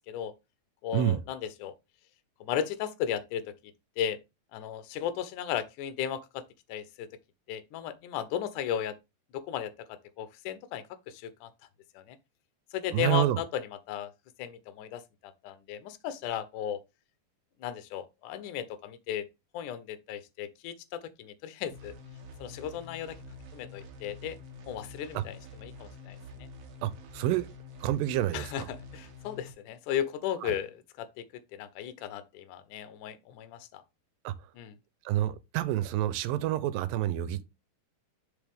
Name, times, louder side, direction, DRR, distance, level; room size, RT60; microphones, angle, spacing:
voice 1, 0.8-1.7 2.4-3.4 4.0-4.2 4.5-6.4 6.7-7.1 7.5-9.0 9.3-11.5 12.0-12.2 12.7-14.1 14.4-16.8 17.6-19.3 19.5-21.9 22.4-23.2 23.5-24.4 24.7-26.5 28.3-31.2 31.5-33.8 34.6-34.7, left 10 dB, 75° left, 2.2 m, -35 dB
voice 2, 12.9-13.4 25.2-25.3 26.8-27.5 27.8-28.7 30.4-30.5 34.2-34.3 35.1-37.4, right 13 dB, 85° right, 2.4 m, -28 dB
sound 1, 21.7-29.5, left 2 dB, 55° right, 1.7 m, -47 dB
7.1 x 5.4 x 3.5 m
omnidirectional pair, 4.0 m